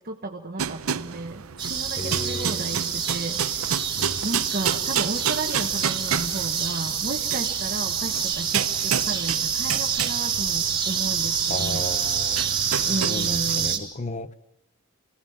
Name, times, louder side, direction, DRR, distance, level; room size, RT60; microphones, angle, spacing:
voice 1, 0.0-3.7 4.2-11.8 12.8-13.8, right 2 dB, 45° right, 2 dB, 1.3 m, -33 dB
sound 1, 0.6-13.7, right 8 dB, 80° right, 0.7 m, -31 dB
sound 2, 1.6-13.8, right 7 dB, 25° right, 3.7 m, -27 dB
voice 2, 2.0-2.8 4.0-4.2 11.5-14.3, left 1 dB, 35° left, 13 dB, 0.9 m, -34 dB
26.5 x 17.0 x 7.2 m, 0.84 s
head